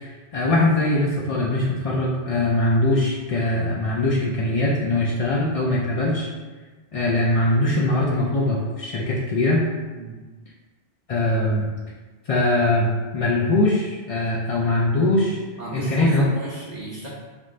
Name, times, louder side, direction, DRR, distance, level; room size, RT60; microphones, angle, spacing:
voice 1, 0.0-6.3 6.9-9.6 11.1-11.7 12.3-15.4 15.7-16.2, left 2 dB, 55° left, -4 dB, 0.3 m, -21 dB
voice 2, 15.6-17.1, right 2 dB, 45° right, -7 dB, 0.7 m, -34 dB
5.2 x 2.5 x 3.1 m, 1.3 s
omnidirectional pair, 1.2 m